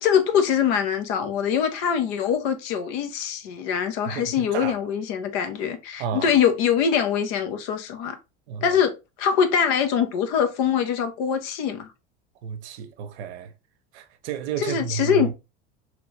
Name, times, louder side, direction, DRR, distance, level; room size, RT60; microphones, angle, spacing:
voice 1, 0.0-8.2 8.6-11.9 14.6-15.3, left 7 dB, 65° left, 0.8 m, -23 dB
voice 2, 4.1-4.8 6.0-6.4 8.5-8.8 12.4-13.5 13.9-15.3, right 7 dB, 70° right, 0.6 m, -32 dB
3.0 x 2.5 x 3.1 m
hypercardioid pair, 80°, 34 cm